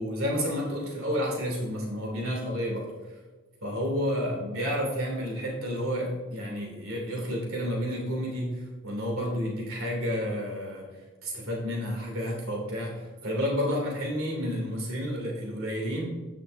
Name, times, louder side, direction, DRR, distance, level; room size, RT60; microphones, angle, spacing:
voice 1, 0.0-2.9 3.6-10.8 11.2-16.1, equal, 70° right, -2 dB, 2.8 m, -30 dB
14.0 x 6.1 x 2.6 m, 1.3 s
head